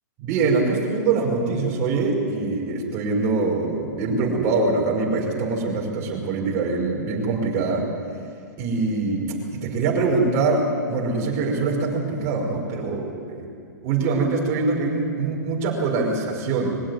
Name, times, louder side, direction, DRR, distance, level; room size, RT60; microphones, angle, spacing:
voice 1, 0.2-7.8 8.6-13.5 13.8-16.8, right 3 dB, 30° right, -1 dB, 5.4 m, -23 dB
22.5 x 16.5 x 9.7 m, 2.3 s
hypercardioid pair, 160°, 10 cm